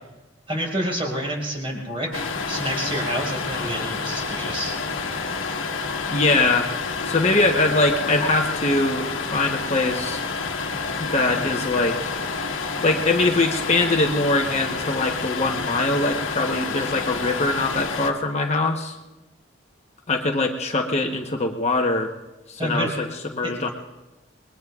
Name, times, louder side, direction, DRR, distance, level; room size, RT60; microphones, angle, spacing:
voice 1, 0.5-4.7 22.6-22.9 23.4-23.5, equal, 30° right, -1 dB, 4.7 m, -28 dB
sound 1, 2.1-18.1, left 4 dB, 90° left, 1.4 m, -29 dB
voice 2, 6.1-6.7 7.0-9.1 9.3-10.2 11.0-12.2 12.8-19.0 20.1-22.1 22.5-23.7, left 2 dB, 35° left, 3 dB, 1.0 m, -22 dB
27.5 x 21.5 x 2.4 m, 1.0 s
head